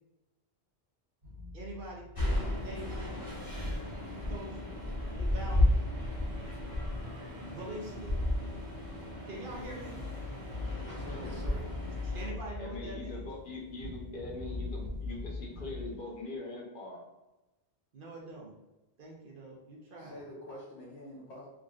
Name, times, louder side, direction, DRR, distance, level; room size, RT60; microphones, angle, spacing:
sound 1, 1.2-15.9, left 3 dB, 85° right, 1.3 m, -43 dB
voice 1, 1.5-2.1 2.6-2.9 4.3-4.6 5.2-5.7 7.5-8.1 9.2-10.0 11.2-11.7 12.0-13.3 17.9-18.5 19.0-20.2, right 2 dB, 55° right, -2 dB, 0.8 m, -44 dB
sound 2, 2.2-12.3, left 1 dB, 25° left, 0.7 m, -33 dB
voice 2, 10.7-11.3 20.0-21.5, left 1 dB, 85° left, -6 dB, 1.0 m, -47 dB
voice 3, 12.6-17.0, left 2 dB, 55° left, -2 dB, 0.9 m, -42 dB
3.6 x 2.5 x 2.3 m, 1.0 s
omnidirectional pair, 1.1 m